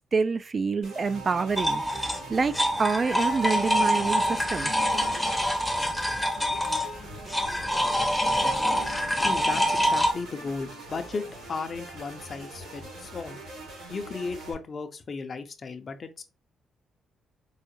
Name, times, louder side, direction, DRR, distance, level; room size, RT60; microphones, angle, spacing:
voice 1, 0.1-4.7, right 4 dB, 35° right, 0.3 m, -27 dB
sound 1, 0.8-14.5, right 2 dB, 85° right, 2.3 m, -43 dB
sound 2, 1.6-10.1, equal, 5° left, 0.7 m, -26 dB
voice 2, 9.2-11.2 11.5-13.4 13.9-16.2, left 4 dB, 40° left, 0.6 m, -35 dB
4.7 x 2.1 x 3.0 m
cardioid pair, 90°, 0 cm